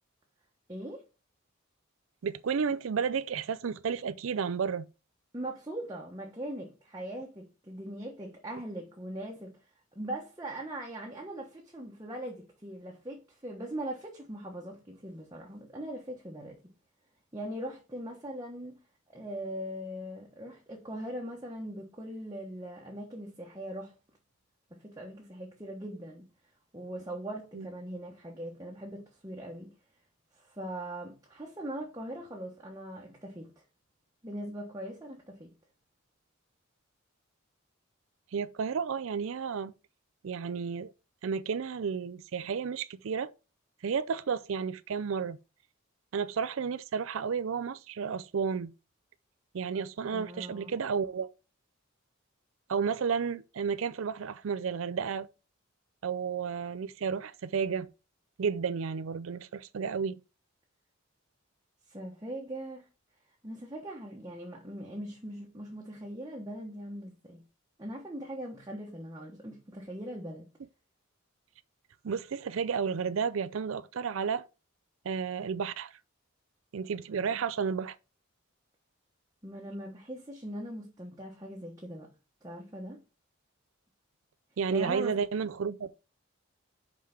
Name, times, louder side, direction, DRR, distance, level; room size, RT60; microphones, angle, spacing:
voice 1, 0.7-1.0 5.3-9.6 9.9-16.6 17.3-18.7 19.1-23.9 24.7-26.3 26.7-29.7 30.3-33.6 34.2-35.5 50.1-50.7 61.9-62.9 63.4-67.4 67.8-70.4 77.3-77.4 79.4-82.1 82.4-83.0 84.7-85.2, right 1 dB, 15° right, 1.2 m, -40 dB
voice 2, 2.2-4.9 27.5-27.7 38.3-39.7 40.2-40.9 41.2-43.3 43.8-45.4 46.1-48.7 49.5-51.3 52.7-55.3 56.0-57.9 58.4-60.2 72.0-74.5 75.0-76.0 76.7-78.0 84.6-85.9, right 6 dB, 70° right, 0.4 m, -32 dB
5.6 x 4.9 x 5.8 m
head